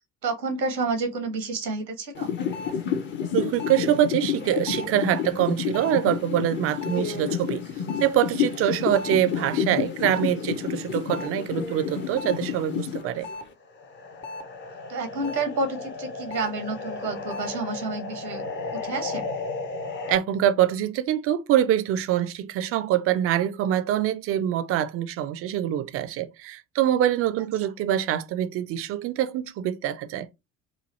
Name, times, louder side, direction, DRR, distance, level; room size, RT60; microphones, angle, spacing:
voice 1, 0.2-2.3 14.9-18.4 18.7-19.3, right 3 dB, 85° right, 0.8 m, -29 dB
sound 1, 2.1-13.4 13.8-20.2, left 7 dB, 25° left, 0.5 m, -31 dB
voice 2, 3.3-7.6 8.0-13.3 20.1-30.3, right 11 dB, 30° right, 0.4 m, -24 dB
3.1 x 2.3 x 4.0 m
figure-of-eight pair, 55°, 49 cm